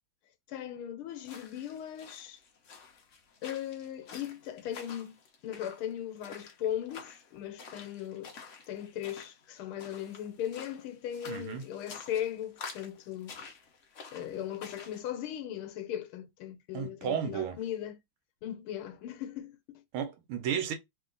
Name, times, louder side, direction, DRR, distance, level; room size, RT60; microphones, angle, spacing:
voice 1, 0.5-2.4 3.4-8.3 8.7-13.4 14.1-18.0 18.4-19.8, left 10 dB, 80° left, 1.6 m, -38 dB
sound 1, 1.2-15.0, left 5 dB, 60° left, 0.8 m, -49 dB
voice 2, 11.3-11.6 16.7-17.6 19.9-20.8, right 8 dB, 80° right, 1.6 m, -33 dB
3.5 x 2.8 x 3.8 m
omnidirectional pair, 2.3 m